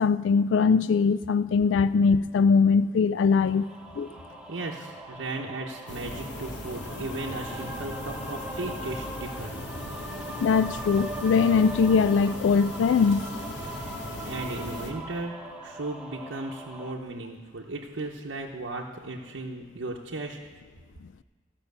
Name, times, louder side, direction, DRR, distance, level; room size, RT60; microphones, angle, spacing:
voice 1, 0.0-3.7 4.0-4.1 10.4-13.3, left 5 dB, 85° left, 15 dB, 0.3 m, -21 dB
sound 1, 3.4-16.9, right 1 dB, 5° right, 0.9 m, -40 dB
voice 2, 4.5-9.5 14.2-15.3 15.6-20.4, right 2 dB, 85° right, -1 dB, 0.8 m, -36 dB
sound 2, 5.9-14.9, left 1 dB, 65° left, 1.4 m, -38 dB
15.5 x 5.7 x 6.7 m, 1.5 s
head